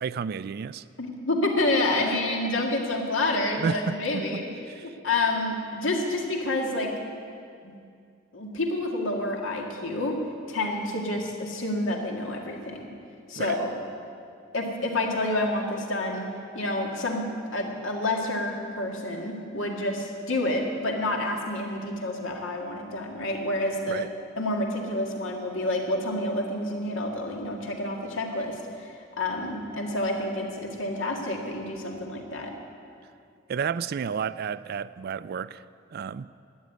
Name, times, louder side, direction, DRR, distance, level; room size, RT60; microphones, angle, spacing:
voice 1, 0.0-0.8 3.6-4.4 4.7-4.8 13.4-13.6 23.9-24.1 33.5-35.6 35.9-36.3, right 6 dB, 50° right, 16 dB, 0.3 m, -31 dB
voice 2, 1.0-4.4 4.8-6.9 7.6-7.7 8.3-10.2 10.5-12.9 13.3-13.7 14.5-16.3 16.5-17.3 17.5-24.0 24.4-32.6, left 2 dB, 75° left, 0 dB, 2.1 m, -28 dB
12.5 x 9.7 x 9.2 m, 2.4 s
head